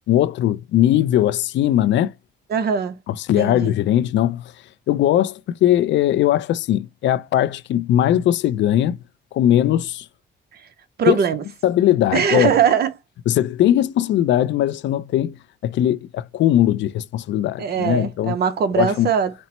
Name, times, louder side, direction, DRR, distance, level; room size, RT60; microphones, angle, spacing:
voice 1, 0.1-2.1 3.1-4.4 4.9-9.0 9.3-10.1 11.1-11.2 11.6-12.5 13.3-18.3 18.8-19.1, left 12 dB, 70° left, 0.4 m, -19 dB
voice 2, 2.5-3.0 3.4-3.7 10.5-10.6 11.0-11.4 12.1-12.9 17.6-19.3, right 7 dB, 55° right, 0.6 m, -20 dB
4.1 x 2.0 x 4.3 m
cardioid pair, 90°, 20 cm